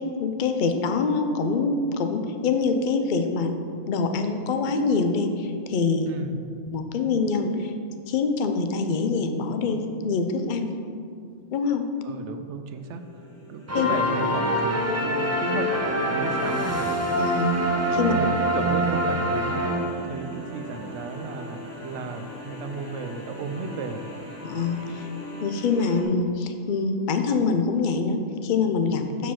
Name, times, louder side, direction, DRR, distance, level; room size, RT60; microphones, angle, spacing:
voice 1, 0.0-3.5 3.9-6.1 6.7-7.7 8.1-10.7 11.5-11.8 13.7-13.9 17.2-18.1 24.4-25.1 25.4-29.3, left 4 dB, 50° left, 7 dB, 0.7 m, -25 dB
voice 2, 6.1-6.4 12.0-13.0 13.5-15.7 16.0-16.9 18.1-24.1, right 5 dB, 80° right, 8 dB, 0.9 m, -34 dB
sound 1, 12.7-26.0, equal, 70° left, 1.8 m, -41 dB
sound 2, 13.7-20.3, equal, 20° right, 0.4 m, -25 dB
7.0 x 4.8 x 5.8 m, 2.3 s
omnidirectional pair, 1.2 m